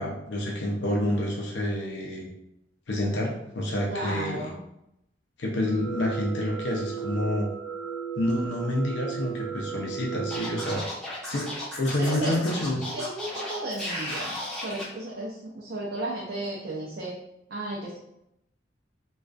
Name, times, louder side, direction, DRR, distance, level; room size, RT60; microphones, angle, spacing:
voice 1, 0.0-2.3 2.9-4.5 5.4-7.5 8.2-10.8 11.3-11.5 11.8-12.8, left 1 dB, 75° left, -2 dB, 0.5 m, -28 dB
voice 2, 3.9-4.6 12.0-12.3 12.9-17.1 17.5-18.0, right 1 dB, 60° right, -4 dB, 0.5 m, -34 dB
sound 1, 5.6-10.8, right 7 dB, 35° right, 0.8 m, -35 dB
Scratching (performance technique), 10.3-14.8, left 1 dB, 5° left, 0.6 m, -35 dB
2.4 x 2.3 x 2.3 m, 0.81 s
head